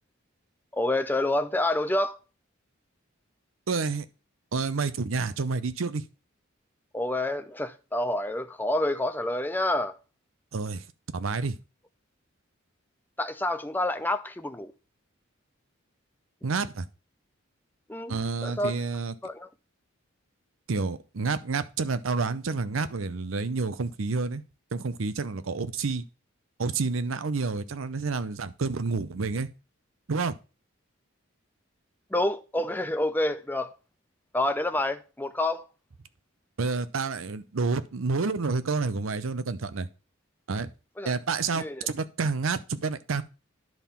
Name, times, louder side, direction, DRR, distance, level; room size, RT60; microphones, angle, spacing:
voice 1, 0.7-2.2 6.9-9.9 13.2-14.7 17.9-18.7 19.2-19.5 32.1-33.7 34.3-35.6 41.0-41.1 41.6-41.9, left 1 dB, 10° left, 0.5 m, -28 dB
voice 2, 3.7-4.1 4.5-6.0 10.5-10.9 11.1-11.6 16.4-16.9 18.1-19.1 20.7-24.4 24.7-26.0 26.6-29.5 30.1-30.3 36.6-39.9 40.5-40.7 41.0-43.2, right 4 dB, 80° right, 0.6 m, -29 dB
10.5 x 3.7 x 5.7 m
head